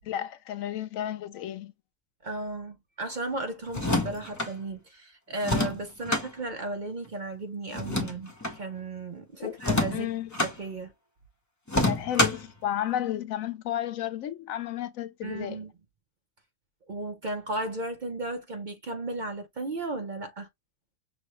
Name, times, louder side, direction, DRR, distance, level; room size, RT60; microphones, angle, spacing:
voice 1, 0.0-1.7 9.4-9.6 9.9-10.3 11.9-15.6, left 11 dB, 90° left, 1.1 m, -32 dB
voice 2, 2.2-10.1 10.4-10.9 15.2-15.7 16.9-20.5, right 2 dB, 50° right, 0.6 m, -35 dB
sound 1, 3.7-4.5 5.4-6.3 7.7-8.6 9.6-10.5 11.7-12.5, left 2 dB, 15° left, 0.7 m, -27 dB
6.1 x 2.1 x 3.0 m
omnidirectional pair, 1.4 m